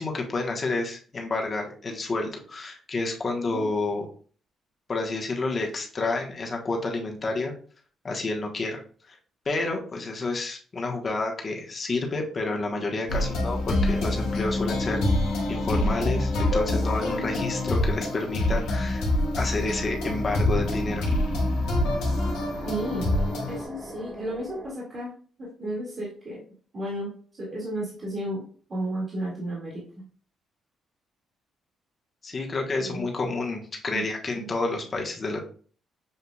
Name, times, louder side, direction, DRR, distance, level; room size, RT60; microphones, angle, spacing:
voice 1, 0.0-4.1 4.9-7.5 8.0-8.8 9.1-9.2 9.4-15.0 15.5-19.0 19.4-21.1 32.2-35.4, left 3 dB, 35° left, 1 dB, 1.2 m, -29 dB
sound 1, 13.1-23.6, left 1 dB, 85° left, 1.3 m, -26 dB
sound 2, 19.6-24.7, right 1 dB, 25° right, 1.5 m, -39 dB
voice 2, 22.6-23.1 23.5-25.1 25.4-26.4 26.7-28.4 28.7-30.1 32.8-33.1 33.9-34.0 34.4-34.5, right 1 dB, 45° right, -5 dB, 1.9 m, -33 dB
6.7 x 2.7 x 2.3 m, 0.43 s
cardioid pair, 90°, 0 cm